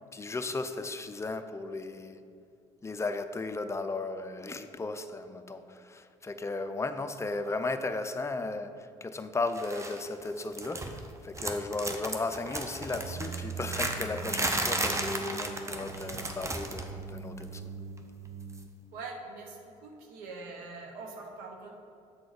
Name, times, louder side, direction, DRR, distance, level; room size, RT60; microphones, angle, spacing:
voice 1, 0.1-2.2 2.8-17.7, left 3 dB, 20° left, 8 dB, 0.5 m, -35 dB
sound 1, 9.6-10.0 10.3-11.1 11.3-16.9 17.2-17.4 18.5-18.6, right 2 dB, 20° right, 0.8 m, -34 dB
sound 2, 12.9-18.7, right 5 dB, 50° right, 0.5 m, -42 dB
voice 2, 18.9-21.8, right 3 dB, 75° right, 2 dB, 1.0 m, -43 dB
7.7 x 3.9 x 4.8 m, 2.6 s
hypercardioid pair, 65°, 16 cm